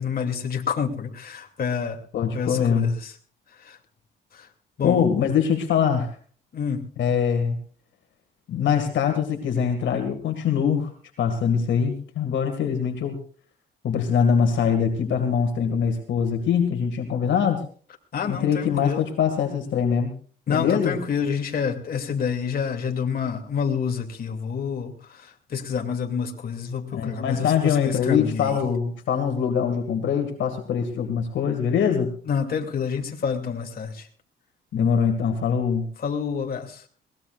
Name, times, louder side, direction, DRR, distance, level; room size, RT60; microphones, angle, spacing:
voice 1, 0.0-2.0 2.3-3.1 3.6-3.8 4.3-4.5 4.8-5.0 6.5-6.8 18.1-19.1 20.5-28.6 32.2-34.1 36.0-36.8, left 6 dB, 50° left, 3 dB, 2.6 m, -28 dB
voice 2, 2.1-3.0 4.8-6.1 7.0-7.6 8.5-10.9 11.2-13.2 13.8-17.6 18.3-20.1 20.5-21.0 26.9-32.1 34.7-35.9, left 7 dB, 70° left, 5 dB, 2.1 m, -23 dB
22.0 x 18.5 x 2.5 m, 0.43 s
cardioid pair, 90°, 20 cm